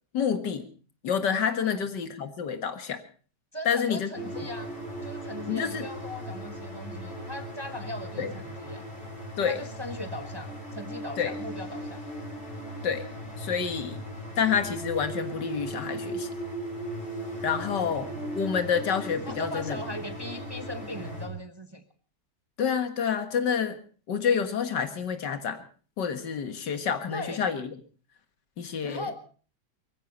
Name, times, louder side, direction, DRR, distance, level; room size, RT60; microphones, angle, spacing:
voice 1, 0.1-0.7 1.0-3.0 3.7-4.4 5.5-5.8 8.2-8.3 9.4-9.6 11.2-11.3 12.8-13.1 13.4-14.0 14.4-16.3 17.4-18.1 18.3-19.8 22.6-23.8 24.1-25.6 26.0-27.7 28.6-29.1, left 7 dB, 85° left, 8 dB, 2.2 m, -28 dB
voice 2, 3.5-4.7 5.0-8.8 9.5-12.0 17.6-18.5 19.3-21.8 27.1-27.4 28.8-29.2, left 1 dB, 15° right, 8 dB, 1.0 m, -39 dB
sound 1, 4.2-21.3, right 1 dB, 30° left, 5.3 m, -38 dB
23.0 x 15.0 x 4.1 m, 0.40 s
omnidirectional pair, 1.8 m